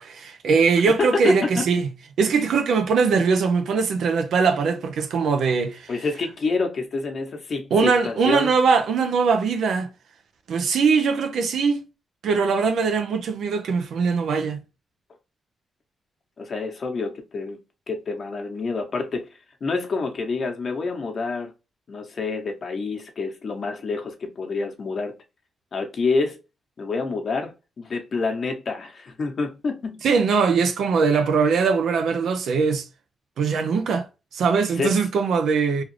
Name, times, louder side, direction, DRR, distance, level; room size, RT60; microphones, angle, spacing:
voice 1, 0.0-1.9 2.2-5.9 7.7-9.9 10.5-11.8 12.2-14.6 30.0-32.9 33.4-34.1 34.3-35.8, right 5 dB, 80° right, 0.6 m, -21 dB
voice 2, 0.9-1.6 5.9-8.5 16.4-17.6 17.9-19.3 19.6-21.5 21.9-25.1 25.7-26.4 26.8-30.0 34.8-35.0, left 4 dB, 55° left, 1.1 m, -27 dB
3.2 x 2.4 x 3.1 m
cardioid pair, 65°, 0 cm